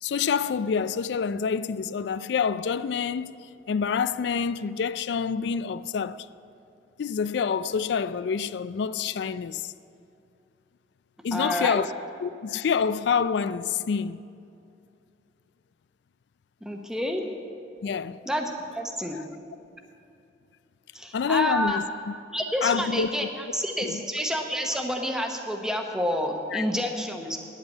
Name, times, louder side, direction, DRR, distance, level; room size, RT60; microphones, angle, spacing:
voice 1, 0.0-3.3 3.7-6.2 7.0-9.7 11.2-11.9 12.2-14.2 17.8-18.2 19.1-19.2 21.1-21.8 22.6-23.1 23.8-24.0 26.5-26.6, left 6 dB, 75° left, 0.3 m, -27 dB
voice 2, 11.3-11.8 16.6-17.2 18.3-19.2 20.9-21.8 22.3-27.4, equal, 5° right, 0.9 m, -29 dB
10.0 x 8.1 x 8.1 m
head